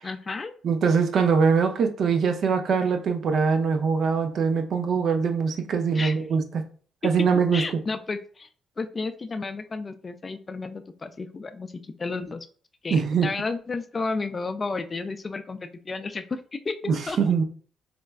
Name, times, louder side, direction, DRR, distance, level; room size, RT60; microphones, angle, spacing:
voice 1, 0.0-0.5 5.9-6.2 7.5-8.5 8.8-12.5 12.8-17.2, left 3 dB, 35° left, 0.4 m, -32 dB
voice 2, 0.6-6.6 7.0-7.8 12.9-13.3 16.9-17.4, right 5 dB, 60° right, 0.5 m, -23 dB
4.1 x 2.2 x 2.3 m
supercardioid pair, 65°, 0 cm